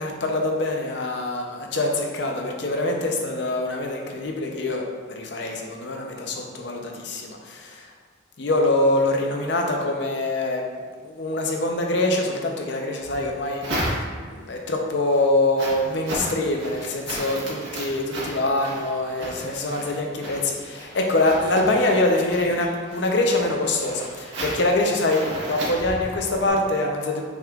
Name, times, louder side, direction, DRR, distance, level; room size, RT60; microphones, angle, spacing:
voice 1, 0.0-7.9 8.4-10.6 11.0-27.2, left 2 dB, 65° left, 1 dB, 0.6 m, -24 dB
sound 1, 13.0-14.4 14.9-26.5, right 1 dB, 80° right, 1.3 m, -34 dB
6.1 x 3.6 x 2.4 m, 1.5 s
head